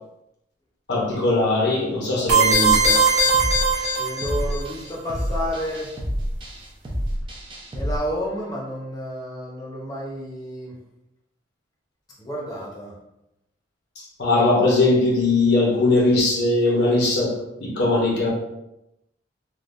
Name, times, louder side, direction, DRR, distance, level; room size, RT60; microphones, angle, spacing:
voice 1, 0.9-3.0 14.0-17.3 17.6-18.3, left 2 dB, 65° left, -3 dB, 0.8 m, -20 dB
sound 1, 2.3-4.6, right 3 dB, 65° right, 1.1 m, -19 dB
sound 2, 2.7-8.0, equal, 30° right, 0.5 m, -29 dB
voice 2, 4.0-5.9 7.7-10.7 12.2-12.9, equal, 20° left, -5 dB, 0.7 m, -30 dB
3.6 x 2.3 x 2.5 m, 0.88 s
head